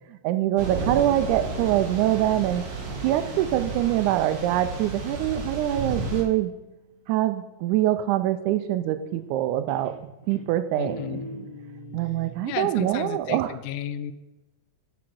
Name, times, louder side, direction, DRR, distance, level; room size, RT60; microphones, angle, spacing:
voice 1, 0.1-2.6 3.0-6.5 7.1-9.9 10.3-11.0 11.9-13.5, right 13 dB, 80° right, 10 dB, 2.0 m, -24 dB
Thunder / Rain, 0.6-6.2, right 3 dB, 60° right, 2.3 m, -33 dB
Guitar, 6.5-7.5 9.0-9.4 9.7-12.6, right 1 dB, 25° right, 1.5 m, -44 dB
voice 2, 10.8-11.3 12.4-14.1, left 11 dB, 80° left, 12 dB, 2.0 m, -33 dB
8.6 x 5.1 x 6.1 m, 1.0 s
omnidirectional pair, 3.6 m